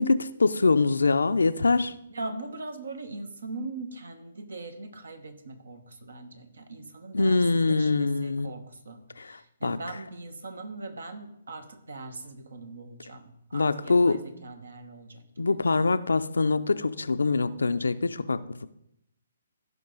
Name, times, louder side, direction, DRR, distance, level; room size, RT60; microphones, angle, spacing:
voice 1, 0.0-1.9 7.1-8.5 9.2-9.8 13.5-14.2 15.4-18.7, left 3 dB, 80° left, 12 dB, 0.5 m, -24 dB
voice 2, 2.1-15.5, right 2 dB, 75° right, 9 dB, 1.3 m, -41 dB
16.0 x 5.4 x 3.9 m, 0.78 s
figure-of-eight pair, 135°, 0 cm